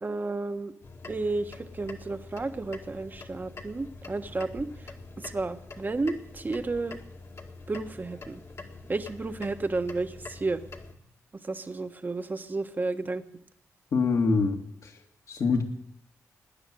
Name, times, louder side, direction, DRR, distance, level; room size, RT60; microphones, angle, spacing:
voice 1, 0.0-0.7 1.1-4.7 5.2-7.0 7.7-8.4 8.9-10.6 11.4-13.2, right 3 dB, 30° right, 8 dB, 1.3 m, -32 dB
sound 1, 0.8-11.0, left 3 dB, 50° left, 1.9 m, -45 dB
voice 2, 13.9-14.9 15.3-15.6, left 4 dB, 65° left, 3 dB, 2.3 m, -25 dB
18.0 x 10.0 x 7.8 m, 0.78 s
cardioid pair, 70°, 6 cm